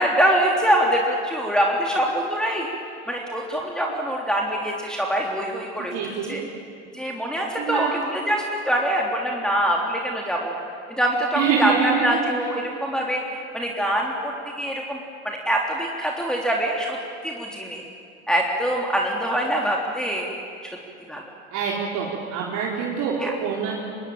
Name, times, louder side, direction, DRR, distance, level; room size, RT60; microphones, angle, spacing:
voice 1, 0.0-2.7 3.1-6.0 6.3-6.4 6.9-10.5 10.9-15.0 15.2-17.0 17.2-17.8 18.3-20.3 21.1-21.2 23.2-23.3, right 1 dB, ahead, -2 dB, 3.6 m, -24 dB
voice 2, 5.9-6.4 7.6-7.9 11.3-12.2 21.5-23.8, right 6 dB, 60° right, -4 dB, 4.3 m, -25 dB
25.5 x 20.5 x 9.0 m, 2.5 s
hypercardioid pair, 65°, 34 cm